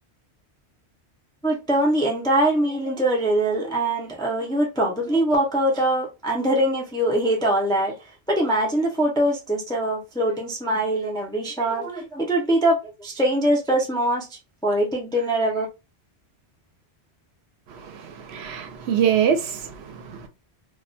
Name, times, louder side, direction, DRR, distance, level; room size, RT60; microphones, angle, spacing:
voice 1, 1.4-7.9 8.3-15.7, right 1 dB, 5° left, 0.3 m, -23 dB
voice 2, 17.7-20.3, right 8 dB, 80° right, 0.8 m, -25 dB
2.2 x 2.1 x 2.5 m
omnidirectional pair, 1.1 m